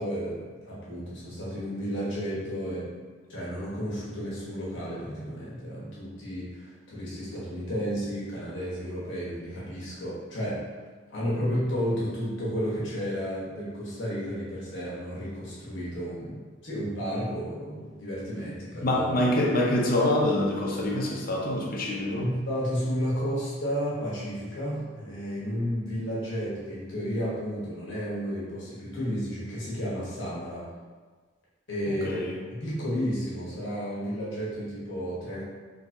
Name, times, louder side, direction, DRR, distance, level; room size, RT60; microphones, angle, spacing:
voice 1, 0.0-2.9 3.3-10.7 11.1-19.1 22.1-30.6 31.7-35.4, equal, 60° left, -8 dB, 1.1 m, -32 dB
voice 2, 18.8-22.3 32.0-32.3, left 1 dB, 45° left, -1 dB, 0.5 m, -25 dB
3.8 x 2.8 x 2.6 m, 1.4 s
head